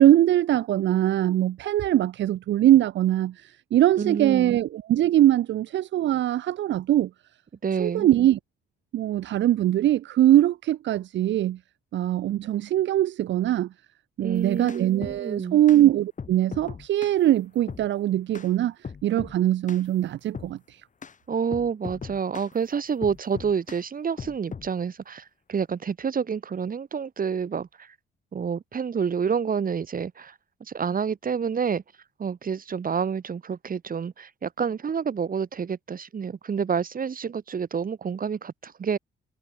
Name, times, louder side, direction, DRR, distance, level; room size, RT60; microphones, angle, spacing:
voice 1, 0.0-7.1 7.8-8.4 8.9-11.6 11.9-13.7 14.2-18.7 19.0-20.8, right 13 dB, 70° right, 0.8 m, -22 dB
voice 2, 4.0-4.6 7.6-8.1 14.2-15.6 21.3-27.7 28.3-30.3 30.7-31.8 32.2-39.0, right 6 dB, 45° right, 6.1 m, -28 dB
sound 1, 14.4-15.2 15.7-15.8 16.2-17.2 17.7-17.9 18.3-18.5 18.8-19.4 19.7-19.9 20.3-20.5 21.0-21.2 21.5-22.5 23.0-23.8 24.2-24.7, left 6 dB, 40° left, 4.8 m, -38 dB
cardioid pair, 90°, 20 cm